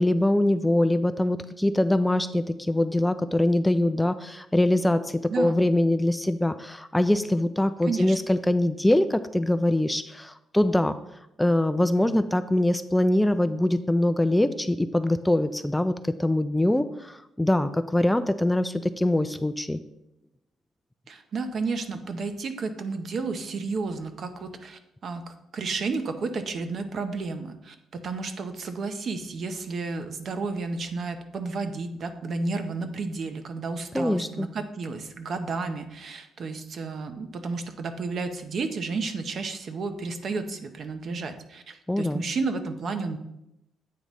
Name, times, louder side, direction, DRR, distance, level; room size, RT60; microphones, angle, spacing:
voice 1, 0.0-11.0 11.4-19.8 33.9-34.5 41.9-42.2, left 1 dB, 10° left, 11 dB, 0.3 m, -23 dB
voice 2, 5.3-5.6 7.9-8.2 21.1-43.2, right 4 dB, 55° right, 8 dB, 0.7 m, -32 dB
8.5 x 3.1 x 5.3 m, 0.84 s
cardioid pair, 90°, 0 cm